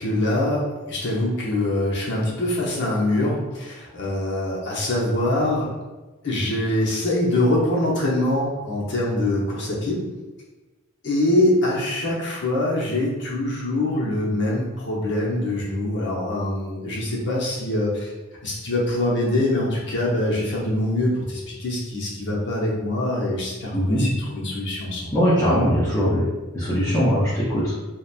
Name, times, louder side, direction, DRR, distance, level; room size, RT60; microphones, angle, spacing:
voice 1, 0.0-5.7 6.2-10.0 11.0-18.1 18.4-25.2, left 1 dB, 55° left, -3 dB, 0.7 m, -24 dB
voice 2, 23.7-24.1 25.1-26.2 26.5-27.7, equal, 15° left, -9 dB, 0.4 m, -20 dB
2.8 x 2.1 x 2.3 m, 1.2 s
head